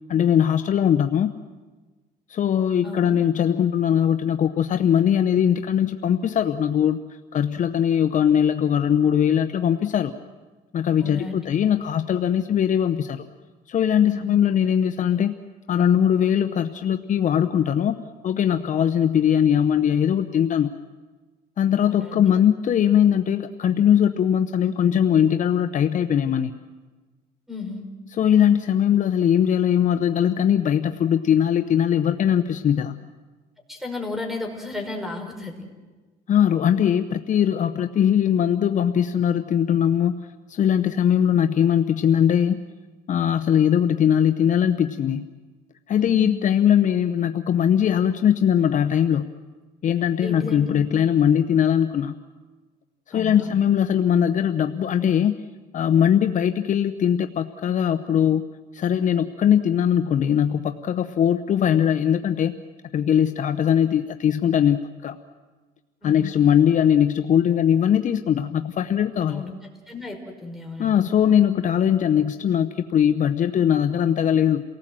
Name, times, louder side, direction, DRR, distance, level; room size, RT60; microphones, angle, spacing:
voice 1, 0.1-1.3 2.3-7.0 7.3-10.1 10.7-13.2 13.7-15.4 15.7-18.0 18.2-20.7 21.6-26.5 28.1-33.0 36.3-40.2 40.5-42.6 43.1-45.3 45.9-49.3 49.8-52.1 53.1-55.4 55.7-58.4 58.7-62.5 62.9-65.2 66.0-69.4 70.8-74.6, left 9 dB, 50° left, 8 dB, 0.9 m, -20 dB
voice 2, 2.8-3.2 11.0-11.5 14.1-14.4 21.8-22.3 27.5-27.8 33.7-35.5 46.0-46.3 50.2-50.8 53.1-53.5 66.0-66.3 69.3-69.5 69.9-71.0, left 3 dB, ahead, 4 dB, 5.2 m, -34 dB
29.0 x 18.5 x 7.7 m, 1.3 s
cardioid pair, 110°, 17 cm